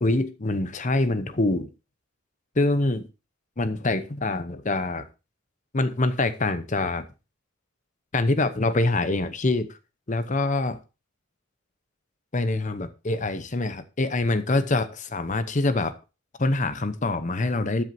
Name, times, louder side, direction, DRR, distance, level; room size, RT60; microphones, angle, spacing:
voice 1, 0.0-1.7 2.6-3.1 3.6-5.1 5.7-7.1 8.1-9.8 10.1-10.8 12.3-15.9 16.4-17.8, left 2 dB, 35° left, 0.9 m, -25 dB
13.0 x 9.2 x 2.8 m
head